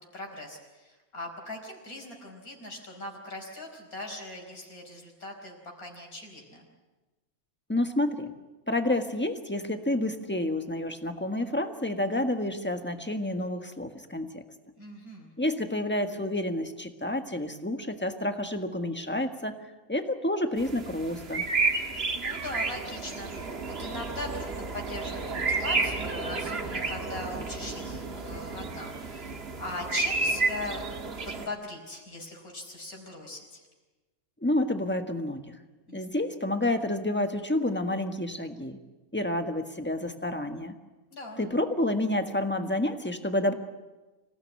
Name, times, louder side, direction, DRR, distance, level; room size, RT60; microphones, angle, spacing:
voice 1, 0.1-6.7 14.8-15.3 21.7-33.6 35.9-36.2 41.1-41.4, left 2 dB, 80° left, 1 dB, 5.3 m, -40 dB
voice 2, 7.7-8.3 8.7-14.4 15.4-19.5 19.9-21.5 34.4-35.6 35.9-38.8 39.1-40.7 41.4-43.5, left 1 dB, 10° left, 6 dB, 1.5 m, -29 dB
sound 1, 20.6-31.5, right 3 dB, 45° right, 1.7 m, -31 dB
26.5 x 17.5 x 9.4 m, 1.2 s
omnidirectional pair, 1.5 m